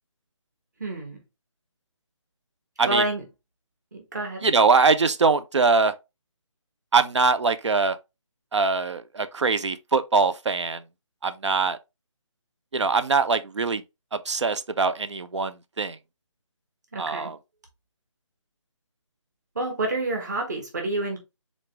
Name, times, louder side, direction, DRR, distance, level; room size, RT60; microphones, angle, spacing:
voice 1, 0.8-1.2 2.9-3.2 3.9-4.5 16.9-17.3 19.5-21.2, right 2 dB, 35° right, 1.3 m, -28 dB
voice 2, 4.4-5.9 6.9-8.0 8.5-10.8 11.2-11.8 12.7-13.8 14.1-16.0 17.0-17.3, right 4 dB, 60° right, 0.5 m, -22 dB
3.9 x 3.2 x 3.2 m
hypercardioid pair, 180°, 16 cm